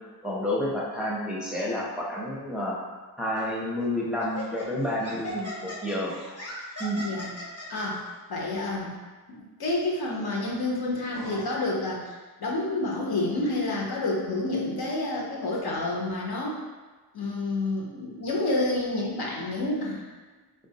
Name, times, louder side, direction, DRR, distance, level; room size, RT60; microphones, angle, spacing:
voice 1, 0.2-2.8 3.2-6.1 6.8-7.0, left 1 dB, 5° right, -5 dB, 0.5 m, -29 dB
Laughter, 3.4-3.6 4.2-7.9, left 1 dB, 40° left, 0.7 m, -38 dB
voice 2, 7.0-7.3 7.7-8.0 8.3-9.0 9.3-16.6 17.1-20.0, left 2 dB, 70° left, -3 dB, 0.7 m, -29 dB
3.7 x 2.3 x 2.7 m, 1.3 s
wide cardioid pair, 115°, 38 cm